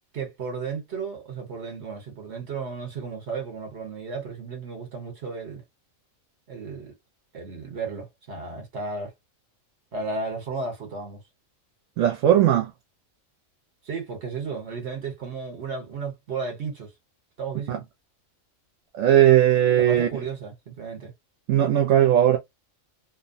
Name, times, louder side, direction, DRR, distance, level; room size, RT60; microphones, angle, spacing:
voice 1, 0.1-5.6 6.5-6.9 7.3-9.1 9.9-11.2 13.8-16.9 17.4-17.8 19.8-21.1, right 4 dB, 55° right, 1.4 m, -34 dB
voice 2, 12.0-12.7 17.7-17.8 19.0-20.1 21.5-22.4, right 11 dB, 70° right, 1.0 m, -18 dB
2.8 x 2.2 x 2.5 m
omnidirectional pair, 1.4 m